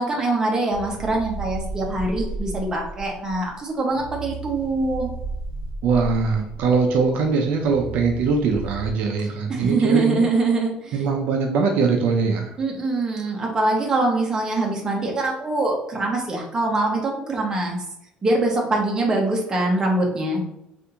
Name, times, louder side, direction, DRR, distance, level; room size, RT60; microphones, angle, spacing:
voice 1, 0.0-5.1 9.5-11.1 12.6-17.8 18.2-20.4, right 2 dB, 25° right, 0 dB, 0.8 m, -23 dB
sound 1, 0.7-8.9, right 3 dB, 45° right, 1.1 m, -34 dB
voice 2, 5.8-10.3 10.9-12.5, right 4 dB, 65° right, 3 dB, 0.4 m, -21 dB
3.4 x 2.5 x 2.8 m, 0.79 s
cardioid pair, 140°, 3 cm